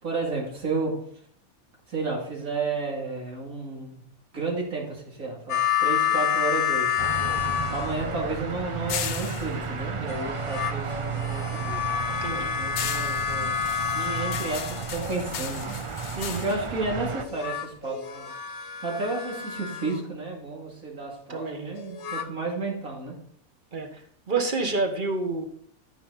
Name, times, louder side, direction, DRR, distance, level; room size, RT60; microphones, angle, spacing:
voice 1, 0.0-0.9 1.9-4.0 4.3-7.0 7.7-11.8 12.3-13.6 13.9-15.8 16.4-18.3 18.8-23.2, right 3 dB, 70° right, -2 dB, 2.9 m, -32 dB
sound 1, 5.5-8.3 10.1-15.3 17.2-20.0 21.8-22.3, left 9 dB, 55° left, 1.1 m, -29 dB
sound 2, 6.5-11.0 11.4-17.8, left 9 dB, 85° left, 1.2 m, -38 dB
sound 3, 7.0-17.3, right 5 dB, 50° right, 0.3 m, -33 dB
voice 2, 21.3-21.7 23.7-24.0 24.3-25.5, right 3 dB, 35° right, 5 dB, 1.4 m, -28 dB
13.0 x 5.8 x 4.1 m, 0.64 s
omnidirectional pair, 1.5 m